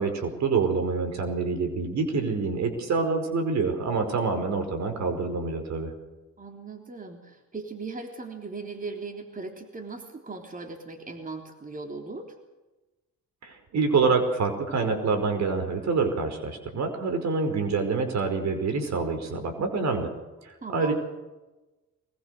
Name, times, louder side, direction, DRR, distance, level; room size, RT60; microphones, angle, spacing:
voice 1, 0.0-5.9 13.4-20.1 20.4-20.9, right 4 dB, 65° right, 7 dB, 5.0 m, -26 dB
voice 2, 6.4-12.3 20.6-20.9, right 3 dB, 25° right, 4 dB, 3.5 m, -38 dB
22.5 x 20.5 x 6.7 m, 1.1 s
cardioid pair, 90°, 30 cm